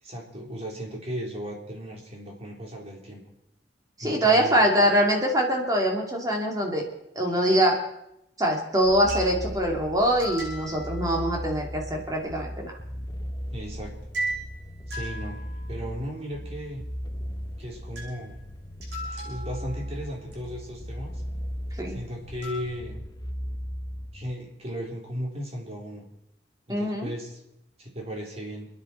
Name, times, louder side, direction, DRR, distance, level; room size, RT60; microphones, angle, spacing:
voice 1, 0.0-3.2 4.0-4.6 13.5-13.9 14.9-15.4 15.7-16.8 17.6-18.4 19.0-21.2 21.9-23.0 24.1-26.1 26.7-27.4 27.8-28.7, equal, 40° right, -1 dB, 4.0 m, -36 dB
voice 2, 4.0-6.8 7.1-7.8 8.4-12.7 21.8-22.0 26.7-27.1, equal, 20° right, 0 dB, 2.5 m, -23 dB
sound 1, 8.8-24.3, equal, 25° left, 1.0 m, -37 dB
sound 2, 9.1-11.4 14.1-14.6 14.9-16.0 17.6-17.7 18.0-18.4 18.8-20.4 22.4-22.6, right 1 dB, 70° right, 7.4 m, -37 dB
29.0 x 10.5 x 4.5 m, 0.83 s
head